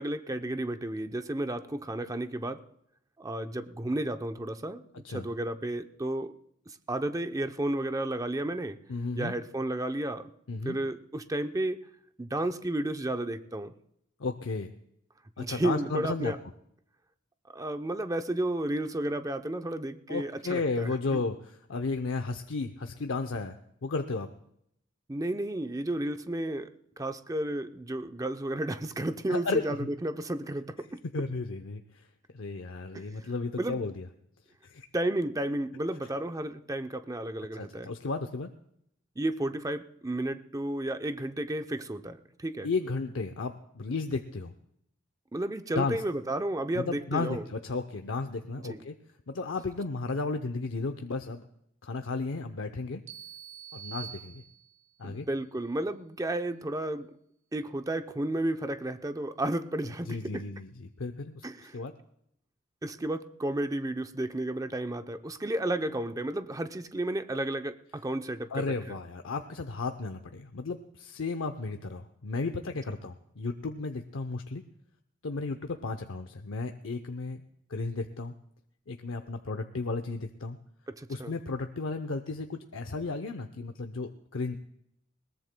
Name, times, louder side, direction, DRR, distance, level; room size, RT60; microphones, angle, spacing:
voice 1, 0.0-2.6 3.2-4.8 5.1-6.3 6.7-8.8 9.2-10.3 10.6-11.8 12.2-13.7 15.4-16.4 17.5-21.2 25.1-31.0 32.9-33.0 33.6-33.8 34.9-37.9 39.2-42.7 45.3-47.4 48.7-48.8 55.0-57.2 57.5-60.4 61.4-61.8 62.8-69.0 80.9-81.3, right 1 dB, 15° right, 8 dB, 0.6 m, -32 dB
voice 2, 8.9-9.3 10.5-10.8 14.2-14.7 15.4-16.4 20.1-24.3 29.3-29.9 31.1-32.1 32.3-34.1 34.6-34.9 37.5-38.5 42.6-44.5 45.8-46.0 46.7-49.0 49.3-51.4 51.8-53.0 53.7-54.4 55.0-55.3 59.8-61.5 61.7-61.9 68.5-74.6 75.2-77.4 77.7-78.3 78.9-80.6 81.1-84.6, left 3 dB, 80° left, 6 dB, 0.7 m, -34 dB
sound 1, 53.1-54.9, right 9 dB, 70° right, 1.0 m, -45 dB
21.0 x 19.0 x 2.2 m, 0.74 s
head